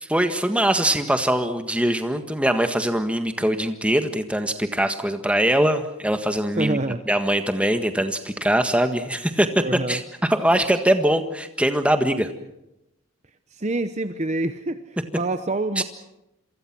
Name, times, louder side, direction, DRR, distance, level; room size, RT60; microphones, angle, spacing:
voice 1, 0.0-6.8 7.1-9.6 9.9-10.0 10.3-12.3 15.8-15.9, right 1 dB, 5° right, 7 dB, 1.6 m, -22 dB
voice 2, 6.6-7.0 9.6-10.0 13.5-15.8, right 2 dB, 30° right, 10 dB, 0.8 m, -26 dB
28.0 x 23.5 x 6.1 m, 0.88 s
head